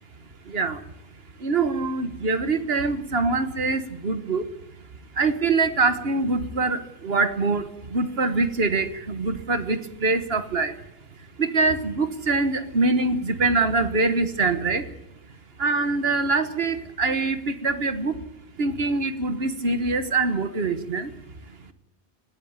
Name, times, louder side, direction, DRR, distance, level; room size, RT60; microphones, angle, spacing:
voice 1, 0.4-0.8 1.4-4.4 5.1-10.8 11.4-14.8 15.6-18.2 18.6-21.1, right 3 dB, 60° right, 10 dB, 1.7 m, -24 dB
19.5 x 16.0 x 8.9 m, 0.87 s
omnidirectional pair, 1.1 m